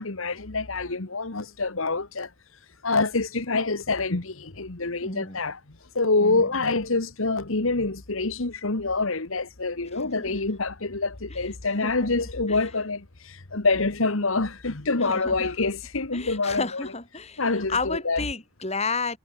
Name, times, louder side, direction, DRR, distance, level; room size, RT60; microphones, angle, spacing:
voice 1, 0.0-2.3 2.8-5.6 5.9-16.9 17.4-18.2, left 3 dB, 70° left, 1.6 m, -26 dB
voice 2, 5.0-5.4 6.2-6.5 9.9-10.4 11.8-12.1 12.5-12.6 15.0-15.5 16.1-17.4 17.7-19.2, left 4 dB, 30° left, 5.2 m, -32 dB
head